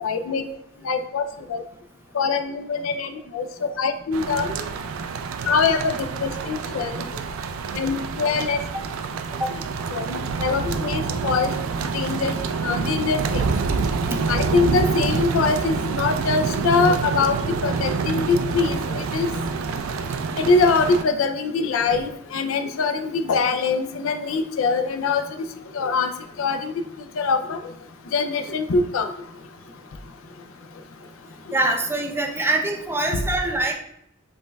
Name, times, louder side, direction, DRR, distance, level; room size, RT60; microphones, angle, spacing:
voice 1, 0.0-0.4 0.9-1.2 1.5-1.6 2.1-3.5 3.8-4.5 5.5-5.9 6.2-6.9 7.8-8.6 9.9-11.5 11.9-12.3 12.6-13.2 14.3-19.3 20.4-25.2 25.7-26.1 26.4-26.7 27.2-27.6 28.1-29.1, left 4 dB, 85° left, 8 dB, 0.4 m, -23 dB
sound 1, 4.1-21.0, right 4 dB, 90° right, 0.3 m, -27 dB
voice 2, 31.5-33.7, right 2 dB, 10° right, 2 dB, 0.4 m, -24 dB
5.2 x 3.3 x 2.3 m, 0.73 s
head